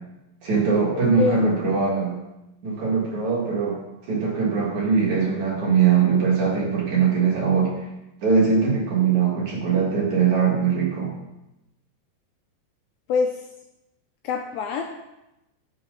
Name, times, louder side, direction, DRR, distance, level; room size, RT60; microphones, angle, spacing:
voice 1, 0.4-2.2 2.6-3.8 4.1-7.7 8.2-11.1, right 5 dB, 55° right, -3 dB, 2.7 m, -21 dB
voice 2, 13.1-13.5 14.2-14.8, left 5 dB, 80° left, 2 dB, 2.2 m, -24 dB
15.5 x 6.5 x 3.7 m, 0.93 s
omnidirectional pair, 4.9 m